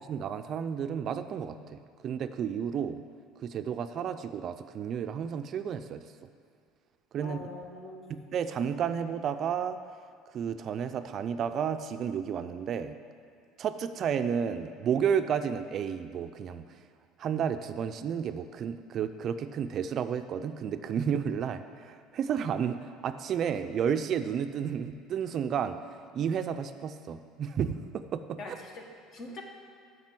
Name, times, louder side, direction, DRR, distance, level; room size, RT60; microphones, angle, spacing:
voice 1, 0.1-3.0 3.4-6.0 7.1-7.4 8.1-9.8 10.3-13.0 13.6-16.6 17.2-25.8 26.1-28.6, right 7 dB, 45° right, 10 dB, 0.4 m, -32 dB
voice 2, 7.2-8.1 28.4-28.8 29.1-29.4, left 2 dB, 45° left, 2 dB, 1.5 m, -42 dB
7.3 x 6.0 x 7.7 m, 2.3 s
supercardioid pair, 115°, 0 cm